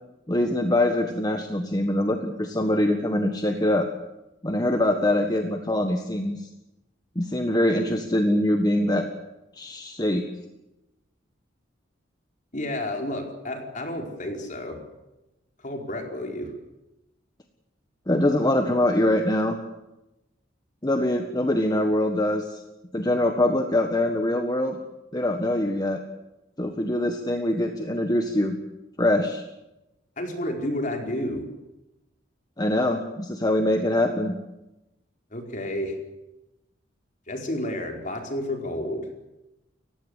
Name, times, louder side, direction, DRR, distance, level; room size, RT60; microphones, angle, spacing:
voice 1, 0.3-3.9 4.4-6.5 7.1-9.0 9.6-10.2 18.1-19.6 20.8-22.6 22.9-24.8 25.1-26.0 26.6-28.6 29.0-29.4 32.6-34.3, left 1 dB, 20° left, 5 dB, 1.5 m, -23 dB
voice 2, 12.5-14.8 15.6-16.5 30.2-31.4 35.3-36.0 37.3-39.1, left 1 dB, 45° left, 3 dB, 4.8 m, -31 dB
30.0 x 16.0 x 8.4 m, 0.96 s
head